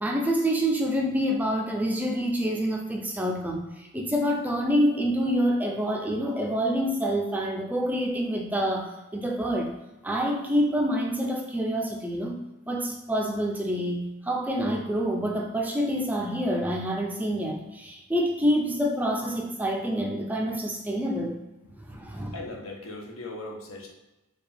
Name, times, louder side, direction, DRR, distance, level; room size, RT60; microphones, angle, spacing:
voice 1, 0.0-9.7 10.0-21.4 21.9-22.3, equal, 10° right, 1 dB, 0.3 m, -27 dB
voice 2, 21.6-23.9, left 2 dB, 70° left, 1 dB, 0.8 m, -40 dB
4.6 x 2.3 x 3.3 m, 1.0 s
head